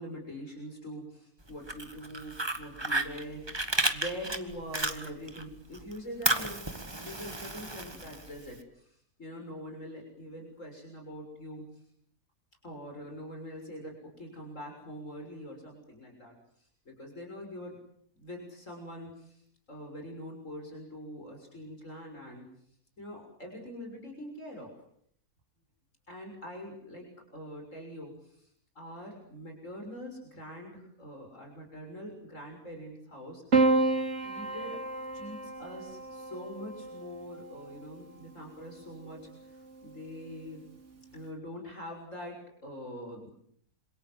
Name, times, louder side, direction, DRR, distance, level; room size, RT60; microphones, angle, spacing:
voice 1, 0.0-3.5 3.9-11.7 12.6-17.8 18.2-19.4 19.7-22.5 23.0-24.7 26.1-28.5 28.8-33.7 34.2-34.8 35.1-40.7 41.1-43.3, equal, 55° left, 2 dB, 6.9 m, -44 dB
Fire, 1.5-5.4 5.7-8.5, right 2 dB, 15° right, 1.8 m, -32 dB
Piano, 33.5-38.0 39.2-39.9, right 3 dB, 50° right, 2.9 m, -30 dB
27.5 x 26.5 x 8.0 m, 0.66 s
omnidirectional pair, 1.6 m